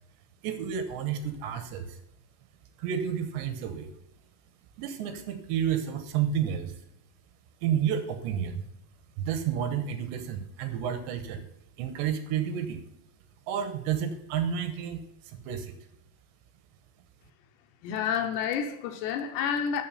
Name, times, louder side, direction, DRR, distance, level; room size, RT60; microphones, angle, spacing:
voice 1, 0.4-2.0 2.8-3.9 4.8-6.8 7.6-8.7 9.2-11.5 11.8-12.8 13.5-15.7, right 8 dB, 75° right, 3.0 m, -30 dB
voice 2, 17.8-19.8, left 7 dB, 75° left, 2.9 m, -29 dB
13.0 x 6.8 x 5.6 m
omnidirectional pair, 5.5 m